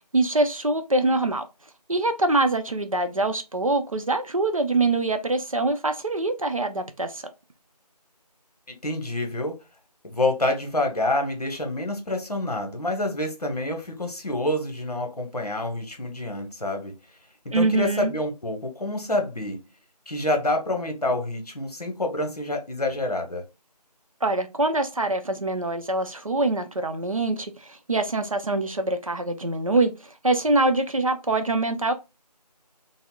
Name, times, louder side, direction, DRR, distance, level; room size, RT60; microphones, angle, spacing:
voice 1, 0.1-1.4 1.9-7.3 17.5-18.1 24.2-31.9, right 2 dB, 55° right, 0.5 m, -24 dB
voice 2, 8.7-9.6 10.0-16.9 17.4-19.6 20.1-23.4, left 1 dB, 65° left, 0.9 m, -27 dB
3.6 x 2.0 x 2.2 m
figure-of-eight pair, 175°, 21 cm